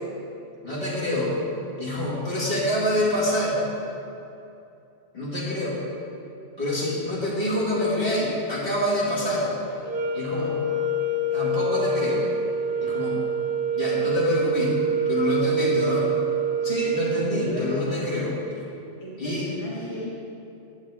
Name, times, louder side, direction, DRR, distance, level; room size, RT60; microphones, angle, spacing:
voice 1, 0.6-1.4 1.8-3.6 5.1-5.8 6.6-9.5 10.1-10.6 11.3-12.2 12.8-13.2 13.7-14.7 15.1-16.1 16.6-18.4 19.2-19.5, left 1 dB, 55° left, -7 dB, 2.2 m, -26 dB
sound 1, 9.8-18.0, right 3 dB, 60° right, 0.9 m, -26 dB
voice 2, 17.3-17.9 19.0-20.2, left 2 dB, 35° left, -8 dB, 1.6 m, -34 dB
11.0 x 8.2 x 3.4 m, 2.7 s
omnidirectional pair, 1.1 m